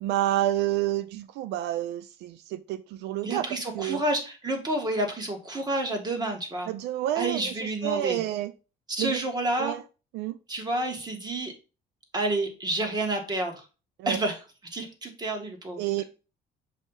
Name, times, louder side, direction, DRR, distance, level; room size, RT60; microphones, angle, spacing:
voice 1, 0.0-3.5 3.8-4.0 6.7-7.4 7.8-8.5 9.0-9.2 9.6-9.8 10.1-10.4 14.0-14.2 15.8-16.0, right 13 dB, 85° right, 0.4 m, -29 dB
voice 2, 3.2-6.7 7.1-8.2 8.9-9.8 10.5-11.5 12.1-13.6 14.1-14.5 14.7-16.0, right 2 dB, 25° right, 1.7 m, -29 dB
6.5 x 2.7 x 5.4 m
cardioid pair, 110°, 17 cm